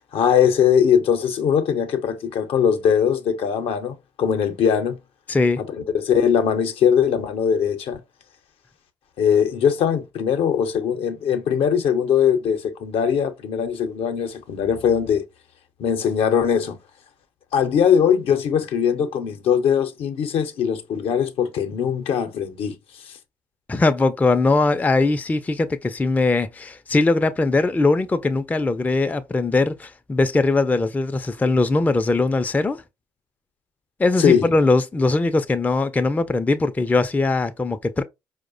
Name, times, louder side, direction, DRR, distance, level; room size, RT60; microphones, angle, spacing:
voice 1, 0.1-5.0 5.6-8.0 9.2-15.2 15.8-16.8 17.5-22.7 23.0-23.1 34.2-34.5, left 8 dB, 65° left, 0.6 m, -20 dB
voice 2, 5.3-5.6 23.7-32.8 34.0-38.0, left 3 dB, 15° left, 0.4 m, -20 dB
4.6 x 2.1 x 2.5 m
hypercardioid pair, 50°, 11 cm